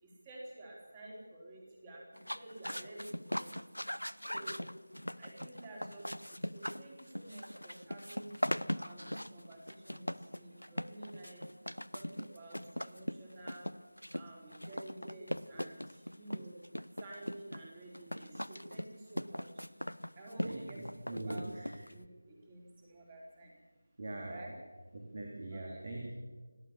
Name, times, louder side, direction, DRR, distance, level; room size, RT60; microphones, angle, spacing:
voice 1, 0.0-3.5 4.3-4.7 5.2-8.3 8.7-11.5 11.9-13.7 14.1-16.6 17.0-19.6 20.2-20.9 21.1-21.5 21.9-23.5 24.2-24.5 25.5-25.8, right 1 dB, 20° right, -1 dB, 4.3 m, -50 dB
sound 1, 2.2-22.1, equal, 85° left, 0.7 m, -40 dB
voice 2, 21.1-21.7 24.0-24.3 24.9-26.1, right 2 dB, 40° right, 0 dB, 3.4 m, -41 dB
29.0 x 12.5 x 7.3 m, 1.3 s
figure-of-eight pair, 165°, 0 cm